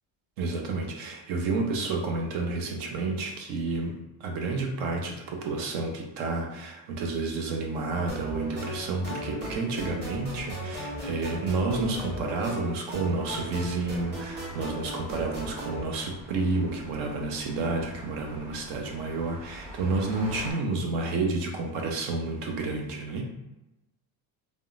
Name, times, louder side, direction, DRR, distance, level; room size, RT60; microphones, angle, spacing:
voice 1, 0.4-3.9 4.2-23.2, right 3 dB, 75° right, 2 dB, 0.8 m, -30 dB
sound 1, 8.1-15.8, equal, 25° right, 0.9 m, -37 dB
sound 2, 13.1-20.5, equal, 40° right, 1.3 m, -45 dB
3.5 x 2.1 x 2.4 m, 0.96 s
cardioid pair, 140°, 46 cm